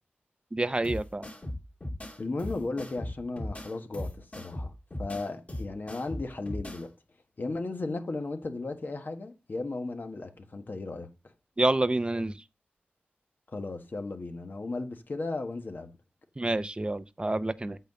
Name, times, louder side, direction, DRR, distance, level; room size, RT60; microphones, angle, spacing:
voice 1, 0.5-1.3 11.6-12.4 16.4-17.8, right 2 dB, 25° right, 0.7 m, -28 dB
sound 1, 0.8-6.8, left 1 dB, 35° left, 2.8 m, -38 dB
voice 2, 2.2-4.7 5.0-6.9 7.4-11.1 13.5-15.9, left 3 dB, 55° left, 1.5 m, -35 dB
8.2 x 4.0 x 6.9 m
cardioid pair, 55°, 4 cm